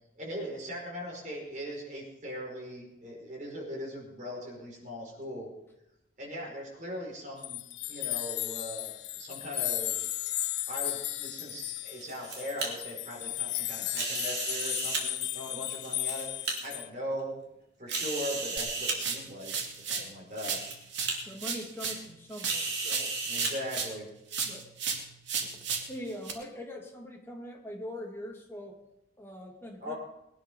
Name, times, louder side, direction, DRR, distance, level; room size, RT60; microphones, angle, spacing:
voice 1, 0.1-5.5 6.2-7.6 7.9-10.0 10.7-16.3 16.6-17.4 17.8-20.7 23.2-24.1 29.8-30.0, equal, 40° right, -1 dB, 4.9 m, -39 dB
sound 1, 7.4-16.9, left 14 dB, 70° left, 0.6 m, -35 dB
sound 2, 11.8-12.7 13.9-15.0 15.7-16.5 17.2-17.3 17.9-19.0 19.9-20.0 20.4-20.7 21.0-21.2 22.4-23.5, right 3 dB, 60° right, 3.9 m, -34 dB
sound 3, 18.6-20.1 20.4-24.0 24.3-26.3, right 6 dB, 85° right, 2.5 m, -35 dB
voice 2, 21.3-23.2 24.4-24.7 25.4-28.8 29.2-29.9, left 1 dB, 15° left, 1 dB, 2.1 m, -42 dB
21.0 x 10.0 x 5.3 m, 0.88 s
head